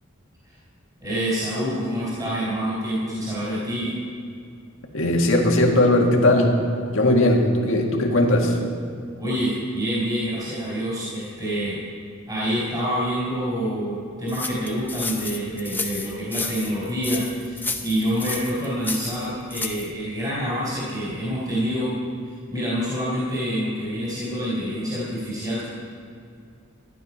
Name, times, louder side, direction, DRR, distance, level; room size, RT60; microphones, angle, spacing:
voice 1, 1.0-3.9 9.2-11.8 12.3-21.9 22.3-25.6, equal, 20° right, -7 dB, 3.6 m, -27 dB
voice 2, 4.9-6.6 6.9-8.6, left 1 dB, 65° left, 1 dB, 1.8 m, -18 dB
sound 1, 14.3-19.9, left 3 dB, 10° left, 0.7 m, -32 dB
13.5 x 11.5 x 5.5 m, 2.5 s
head